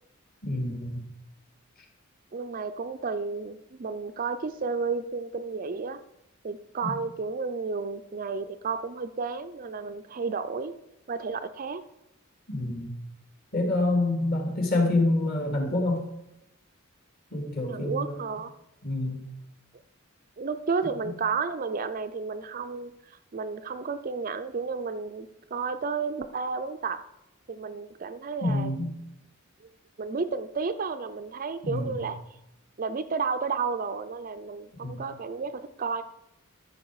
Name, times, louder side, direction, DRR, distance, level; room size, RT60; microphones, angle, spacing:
voice 1, 0.4-1.0 6.8-6.9 12.5-12.9 13.5-16.0 17.3-18.1 18.8-19.2 21.0-21.1 28.4-28.9 31.6-32.0 34.8-35.0, left 2 dB, 45° left, 1 dB, 2.4 m, -27 dB
voice 2, 2.3-6.0 6.4-10.7 11.1-11.8 17.7-18.5 20.4-27.0 27.5-28.7 30.0-32.2 32.8-36.0, right 5 dB, 40° right, 10 dB, 0.4 m, -32 dB
13.5 x 6.0 x 4.8 m, 0.88 s
head